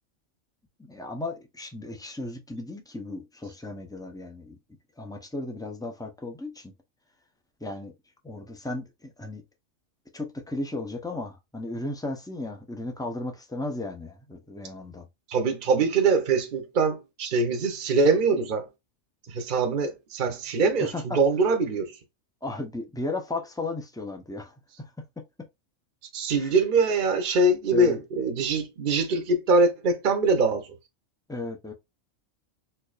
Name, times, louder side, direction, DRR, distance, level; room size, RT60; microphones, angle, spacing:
voice 1, 0.8-4.6 5.0-6.7 7.6-7.9 8.2-9.4 10.1-15.1 20.8-21.2 22.4-24.9 25.2-25.3 26.3-26.5 27.7-28.0 31.3-31.7, left 2 dB, 5° left, 0.4 m, -35 dB
voice 2, 15.3-18.7 19.3-21.9 26.1-30.7, right 3 dB, 45° right, 0.8 m, -23 dB
4.5 x 2.7 x 2.4 m
omnidirectional pair, 1.4 m